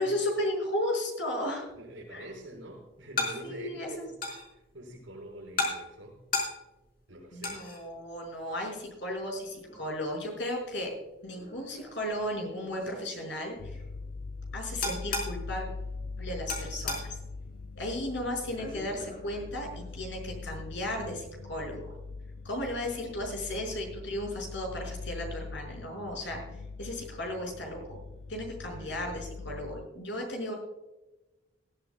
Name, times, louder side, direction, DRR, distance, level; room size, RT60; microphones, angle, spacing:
voice 1, 0.0-1.7 2.1-2.3 3.4-4.1 7.3-10.9 11.2-13.8 14.5-15.7 16.2-17.2 17.8-21.9 22.4-28.0 28.3-30.5, left 1 dB, 70° left, 1 dB, 5.7 m, -35 dB
sound 1, 1.7-20.2, left 3 dB, 50° left, 4.6 m, -40 dB
voice 2, 1.7-4.1 4.5-6.2 7.1-7.6 28.8-29.0, right 1 dB, 85° right, -6 dB, 4.9 m, -45 dB
sound 2, 13.6-29.9, left 3 dB, 85° left, 0.5 m, -42 dB
20.0 x 15.0 x 2.3 m, 1.1 s
head